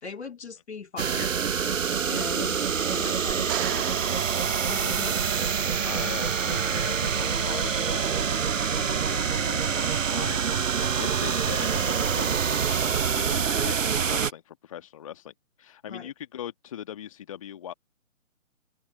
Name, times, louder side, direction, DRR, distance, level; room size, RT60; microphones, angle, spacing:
voice 1, 0.0-1.4 2.1-2.6 2.9-4.1 4.7-5.2 15.9-16.1, left 5 dB, 50° left, 2.4 m, -39 dB
sound 1, 1.0-14.3, right 7 dB, 65° right, 0.7 m, -26 dB
sound 2, 3.3-5.6 8.9-9.0, right 19 dB, 15° right, 1.7 m, -36 dB
voice 2, 5.8-17.7, left 10 dB, 25° left, 1.5 m, -40 dB
figure-of-eight pair, 145°, 41 cm